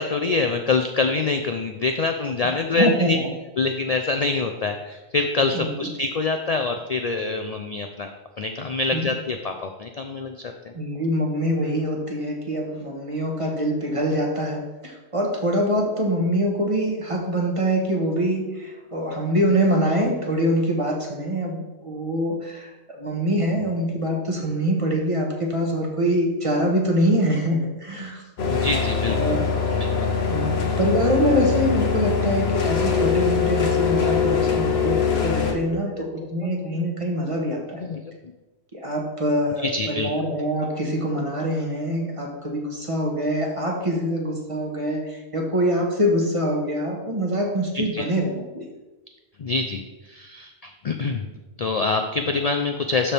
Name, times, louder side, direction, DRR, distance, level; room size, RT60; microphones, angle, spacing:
voice 1, 0.0-3.2 3.6-8.1 8.4-10.3 28.5-29.4 29.7-30.1 36.0-36.1 37.8-38.0 39.6-40.1 47.7-48.1 49.4-49.8 50.1-51.3 51.6-53.1, left 3 dB, 50° left, 5 dB, 0.5 m, -25 dB
voice 2, 2.4-3.3 5.5-5.9 8.9-9.2 10.7-28.2 29.1-29.8 30.3-37.8 38.7-48.7, equal, 30° right, 0 dB, 1.3 m, -24 dB
sound 1, 28.4-35.5, left 6 dB, 70° left, 1.2 m, -23 dB
12.0 x 4.4 x 3.4 m, 1.1 s
omnidirectional pair, 1.1 m